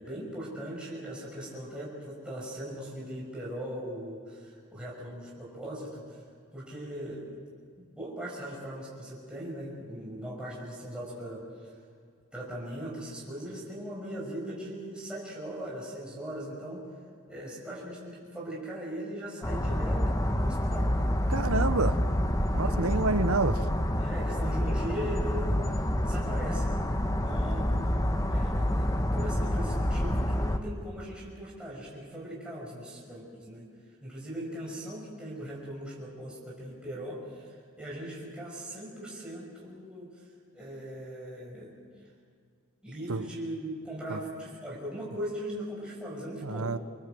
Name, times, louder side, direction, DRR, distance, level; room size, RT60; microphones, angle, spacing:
voice 1, 0.0-6.2 6.5-7.3 7.8-11.7 12.3-16.8 17.2-21.0 22.6-23.1 24.0-27.7 28.3-33.7 34.0-40.2 40.5-41.7 42.8-46.7, right 1 dB, 5° right, -5 dB, 5.9 m, -39 dB
sound 1, 19.4-30.6, left 1 dB, 15° left, 1.1 m, -28 dB
voice 2, 21.3-22.0 22.5-23.6 43.1-43.3 44.1-44.2 46.4-46.8, right 3 dB, 75° right, 11 dB, 1.0 m, -28 dB
26.5 x 21.0 x 7.8 m, 2.1 s
head